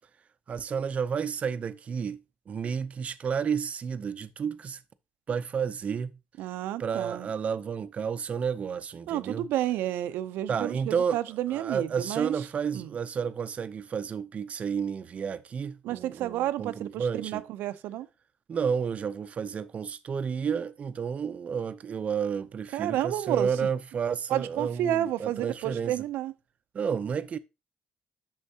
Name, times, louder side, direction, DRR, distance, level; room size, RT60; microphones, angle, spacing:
voice 1, 0.5-4.8 5.3-6.2 6.8-9.5 10.5-11.2 11.5-17.4 18.5-25.9 26.7-27.4, right 6 dB, 45° right, 0.6 m, -31 dB
voice 2, 6.4-7.3 9.1-12.3 12.7-12.9 15.8-18.1 22.7-23.5 24.3-26.3, right 13 dB, 85° right, 0.5 m, -31 dB
8.1 x 6.4 x 2.8 m
cardioid pair, 105°, 3 cm